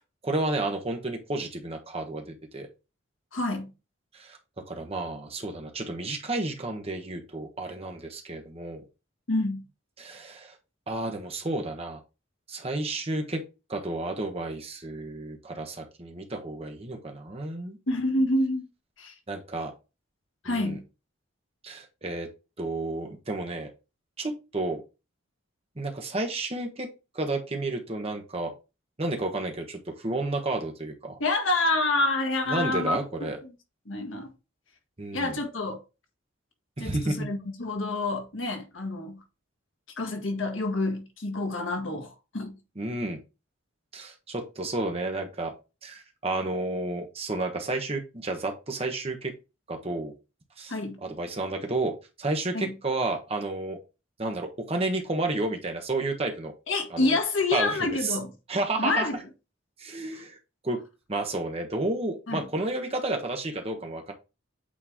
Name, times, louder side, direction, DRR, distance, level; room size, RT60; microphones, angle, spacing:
voice 1, 0.2-2.7 4.1-4.4 4.7-8.8 10.0-10.5 10.9-12.0 12.5-13.4 13.7-17.8 19.3-19.7 20.4-20.8 21.6-22.3 22.6-23.7 24.2-24.8 25.8-26.9 27.1-28.5 29.0-31.2 32.5-33.4 35.0-35.4 36.8-37.3 42.8-43.2 43.9-45.5 45.8-49.3 49.7-50.1 50.6-50.7 51.0-51.9 52.2-53.8 54.2-56.5 56.9-57.1 57.5-58.2 58.5-59.1 59.8-60.4 60.6-60.8 61.1-64.1, right 2 dB, 30° right, 1.2 m, -31 dB
voice 2, 3.3-3.7 9.3-9.6 17.9-18.6 19.0-19.1 20.4-20.8 31.2-33.0 33.8-34.3 35.1-35.8 36.8-39.2 40.0-42.5 50.7-51.0 52.5-52.7 56.7-58.3 58.8-59.2 62.3-62.4, left 2 dB, 80° left, 1.5 m, -28 dB
8.6 x 3.2 x 3.6 m
head